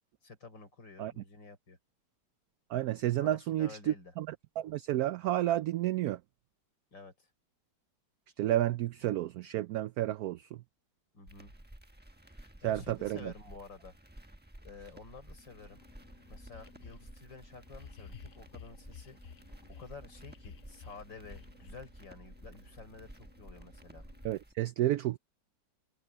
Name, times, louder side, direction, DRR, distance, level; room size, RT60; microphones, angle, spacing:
voice 1, 0.2-1.8 3.2-4.1 6.9-7.3 11.1-11.5 12.3-13.9 14.6-15.8 16.3-19.2 19.7-24.0, left 4 dB, 90° left, 5.9 m, -51 dB
voice 2, 2.7-4.3 4.6-6.2 8.4-10.4 12.6-13.2 24.2-25.2, right 14 dB, 70° right, 0.9 m, -31 dB
sound 1, 11.3-24.5, right 1 dB, 5° right, 0.9 m, -53 dB
sound 2, 15.3-24.3, equal, 45° right, 3.4 m, -60 dB
sound 3, 15.9-16.0 16.5-17.1 17.7-19.9 20.2-21.7, left 7 dB, 70° left, 0.5 m, -51 dB
omnidirectional pair, 1.9 m